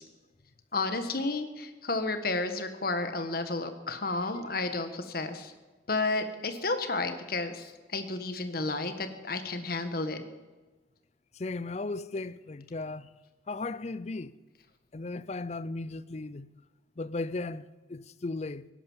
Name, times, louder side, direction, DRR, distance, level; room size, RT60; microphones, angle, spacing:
voice 1, 0.7-5.5 5.9-10.2, left 3 dB, 50° left, 1.5 m, -32 dB
voice 2, 11.3-13.1 13.5-14.3 14.9-16.5 17.0-18.7, left 3 dB, 35° left, 0.5 m, -36 dB
17.5 x 11.0 x 7.3 m
head